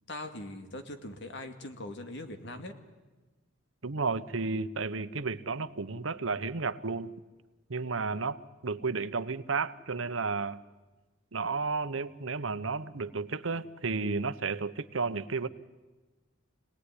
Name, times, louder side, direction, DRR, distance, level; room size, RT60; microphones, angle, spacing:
voice 1, 0.1-2.7, left 1 dB, 65° left, 8 dB, 2.2 m, -41 dB
voice 2, 3.8-7.1 7.7-10.6 11.3-15.5, right 4 dB, 85° right, 13 dB, 1.0 m, -32 dB
26.5 x 18.5 x 9.9 m, 1.2 s
head